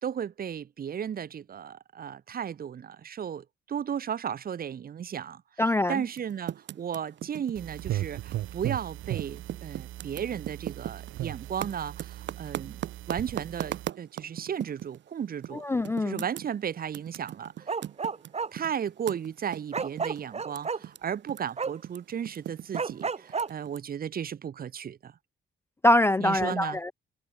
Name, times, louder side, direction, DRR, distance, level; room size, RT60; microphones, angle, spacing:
voice 1, 0.0-5.4 5.9-12.8 13.1-15.6 16.0-17.6 18.5-25.1 26.2-26.8, right 8 dB, 50° right, 1.1 m, -35 dB
voice 2, 5.6-6.0 15.5-16.2 25.8-26.9, left 1 dB, 10° left, 0.3 m, -24 dB
Typing, 6.1-8.9 9.1-15.0 15.4-15.6 15.9-21.0 21.2-23.8, right 11 dB, 65° right, 1.2 m, -39 dB
sound 1, 7.6-13.9, right 15 dB, 85° right, 2.0 m, -37 dB
Bark, 17.6-18.5 19.7-20.8 21.6-21.7 22.7-23.5, right 5 dB, 35° right, 2.2 m, -30 dB
cardioid pair, 90°, 20 cm